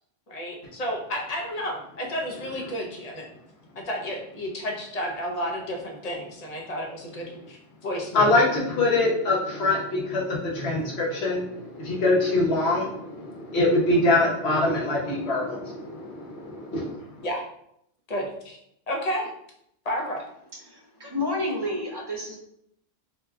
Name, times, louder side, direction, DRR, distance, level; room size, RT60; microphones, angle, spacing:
voice 1, 0.3-3.2 3.8-7.6 7.8-8.3 17.2-17.4 18.1-18.6 18.9-19.3 19.8-20.2, equal, 45° left, 0 dB, 0.7 m, -31 dB
voice 2, 8.1-17.3, left 2 dB, 75° left, -3 dB, 1.1 m, -24 dB
voice 3, 20.6-22.4, left 1 dB, 30° right, -1 dB, 0.5 m, -30 dB
2.8 x 2.2 x 3.4 m, 0.74 s
omnidirectional pair, 1.1 m